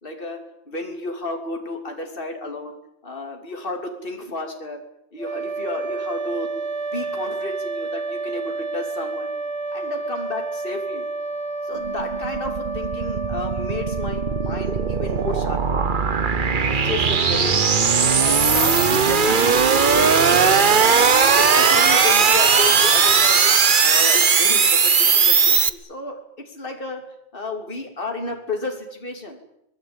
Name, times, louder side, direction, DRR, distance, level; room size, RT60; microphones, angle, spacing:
voice 1, 0.0-2.8 3.0-4.8 5.1-6.5 6.9-9.3 9.7-11.1 11.6-15.8 16.5-17.7 18.1-20.7 21.3-23.5 23.8-27.0 27.3-29.4, left 2 dB, 50° left, 3 dB, 3.3 m, -32 dB
sound 1, 5.2-16.1, right 3 dB, 60° right, 2.6 m, -30 dB
sound 2, 11.8-25.7, right 5 dB, 45° right, 1.2 m, -18 dB
24.5 x 20.0 x 9.0 m, 0.80 s
omnidirectional pair, 1.2 m